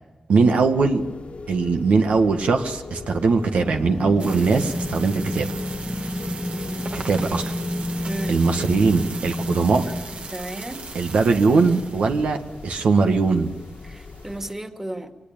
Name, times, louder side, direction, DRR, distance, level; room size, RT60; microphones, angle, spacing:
voice 1, 0.3-1.0 1.5-5.5 6.9-7.5 8.3-9.8 10.9-12.4 12.6-13.5, right 4 dB, 90° right, 5 dB, 1.6 m, -20 dB
sound 1, 0.6-14.5, left 4 dB, 70° left, 1.6 m, -40 dB
sound 2, 3.6-10.3, left 1 dB, 10° left, 1.2 m, -30 dB
sound 3, 4.2-14.5, right 4 dB, 65° right, 1.8 m, -39 dB
voice 2, 8.0-8.3 10.3-10.9 13.9-15.1, right 1 dB, 15° right, 6 dB, 2.2 m, -33 dB
23.0 x 20.0 x 8.9 m, 1.1 s
cardioid pair, 65°, 2 cm